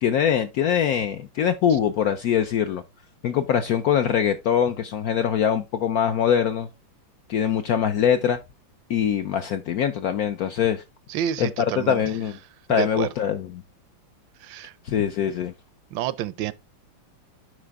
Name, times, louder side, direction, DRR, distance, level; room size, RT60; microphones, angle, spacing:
voice 1, 0.0-2.8 3.2-6.7 7.3-8.4 8.9-10.8 11.4-11.5 11.8-12.4 12.7-13.5 14.8-15.5, left 8 dB, 70° left, 0.8 m, -23 dB
voice 2, 11.1-12.0 12.7-13.1 14.4-14.7 15.9-16.5, right 11 dB, 80° right, 1.3 m, -29 dB
9.9 x 4.2 x 3.4 m
omnidirectional pair, 2.1 m